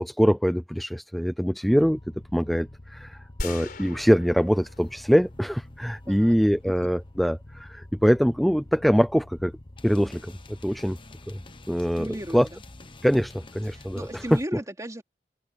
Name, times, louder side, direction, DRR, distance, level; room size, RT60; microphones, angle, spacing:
voice 1, 0.0-2.0 2.3-9.5 9.8-11.0 11.3-11.4 11.7-12.1 12.3-12.5 13.0-14.4, equal, ahead, 0.5 m, -23 dB
sound 1, 1.7-14.5, left 1 dB, 30° left, 1.1 m, -46 dB
sound 2, 3.4-5.7, left 2 dB, 55° left, 4.1 m, -39 dB
voice 2, 6.0-6.4 11.9-12.6 13.7-15.0, right 1 dB, 20° right, 2.9 m, -36 dB
head